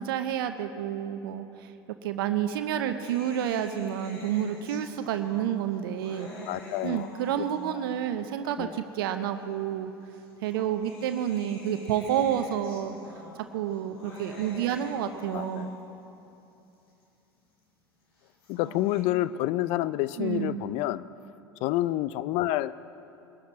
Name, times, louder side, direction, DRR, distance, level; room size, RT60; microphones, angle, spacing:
voice 1, 0.0-1.5 2.0-6.3 6.8-9.9 10.4-13.0 13.5-15.7 20.2-20.7, right 10 dB, 70° right, 9 dB, 0.8 m, -29 dB
sound 1, 3.0-8.1 9.0-9.1 10.2-16.1 18.2-19.0, left 1 dB, 80° left, 3.2 m, -45 dB
voice 2, 6.5-7.1 7.4-7.8 8.6-8.8 15.3-15.7 18.5-21.0 21.6-22.7, left 15 dB, 55° left, 16 dB, 0.5 m, -29 dB
22.0 x 12.5 x 4.2 m, 2.8 s
hypercardioid pair, 75°, 13 cm